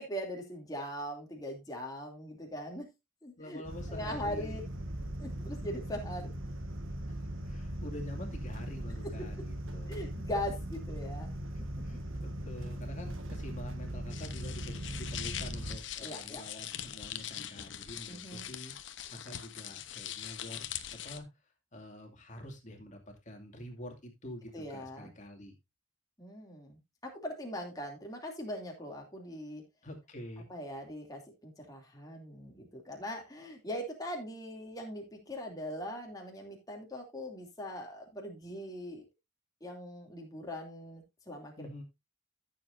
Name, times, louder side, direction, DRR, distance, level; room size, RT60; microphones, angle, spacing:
voice 1, 0.0-2.9 3.2-3.6 3.9-4.6 5.2-6.3 9.9-11.4 16.0-16.4 18.1-18.5 24.5-25.1 26.2-29.6 30.5-39.1 39.6-41.5, equal, 20° left, 0 dB, 2.7 m, -41 dB
voice 2, 3.4-4.6 6.2-6.3 7.1-7.2 7.4-10.0 11.5-18.7 19.1-20.6 20.9-21.3 21.7-25.5 29.8-30.5 41.6-41.8, left 1 dB, 35° left, 3 dB, 2.4 m, -47 dB
sound 1, 3.6-15.8, right 1 dB, 80° right, 1.4 m, -39 dB
sound 2, 14.1-21.2, left 11 dB, 60° left, 0.9 m, -42 dB
14.0 x 7.4 x 2.6 m, 0.22 s
head